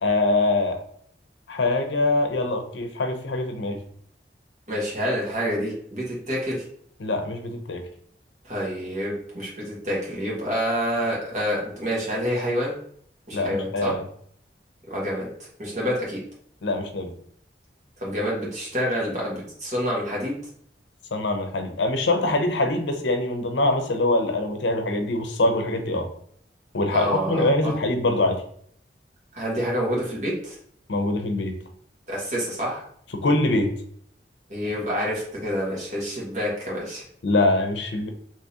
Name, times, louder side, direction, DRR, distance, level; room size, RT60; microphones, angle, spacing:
voice 1, 0.0-0.8 1.5-3.8 7.0-7.9 13.3-14.1 16.6-17.1 21.1-26.1 26.7-28.4 30.9-31.6 33.1-33.7 37.2-38.1, left 2 dB, 90° left, 5 dB, 0.6 m, -23 dB
voice 2, 4.7-6.6 8.5-12.8 13.3-13.9 14.8-15.3 15.6-16.2 18.0-20.3 26.9-27.7 29.3-30.5 32.1-32.8 34.5-37.0, equal, 40° right, -4 dB, 1.3 m, -27 dB
3.5 x 2.9 x 2.8 m, 0.63 s
head